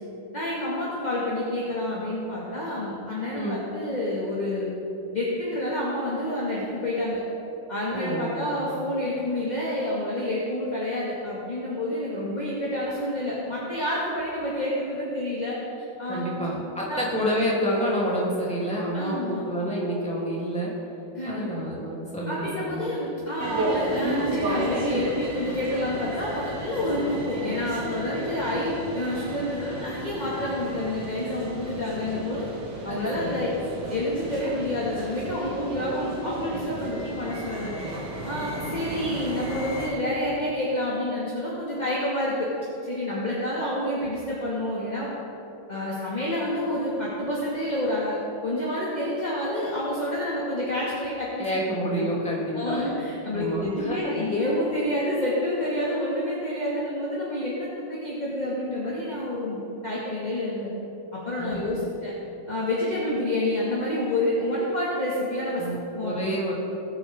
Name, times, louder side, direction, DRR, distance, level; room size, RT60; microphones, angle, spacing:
voice 1, 0.3-4.7 5.1-7.2 7.7-15.6 16.0-16.4 16.9-17.0 18.9-19.4 21.1-21.5 22.3-32.5 32.8-33.5 33.7-37.7 38.2-42.5 42.8-45.1 45.7-51.5 52.5-60.7 61.1-62.1 62.5-65.7 65.9-66.2, left 1 dB, 20° left, -7 dB, 2.0 m, -28 dB
voice 2, 7.9-8.6 16.1-20.7 21.2-22.9 32.8-33.4 51.4-52.8 53.3-54.1 61.4-61.8 65.6-66.5, equal, 5° left, -6 dB, 3.0 m, -29 dB
sound 1, 23.4-39.9, right 1 dB, 60° right, 2.4 m, -33 dB
21.0 x 9.3 x 3.7 m, 2.9 s
omnidirectional pair, 2.1 m